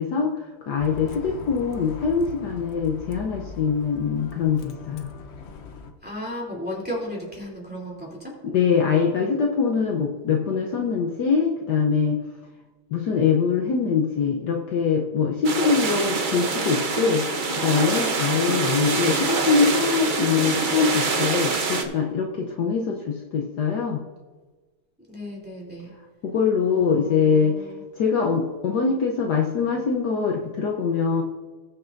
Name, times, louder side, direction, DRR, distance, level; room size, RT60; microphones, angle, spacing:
voice 1, 0.0-5.1 8.5-12.2 12.9-24.0 26.2-27.7 28.0-31.2, left 5 dB, 65° left, 1 dB, 1.3 m, -23 dB
Bus, 0.8-5.9, left 5 dB, 90° left, 0.5 m, -40 dB
voice 2, 6.0-8.3 25.1-25.9 26.7-27.8, equal, 5° right, -4 dB, 2.8 m, -35 dB
sound 1, 15.4-21.8, right 4 dB, 80° right, 0.4 m, -25 dB
20.0 x 6.8 x 2.6 m, 1.3 s
omnidirectional pair, 2.2 m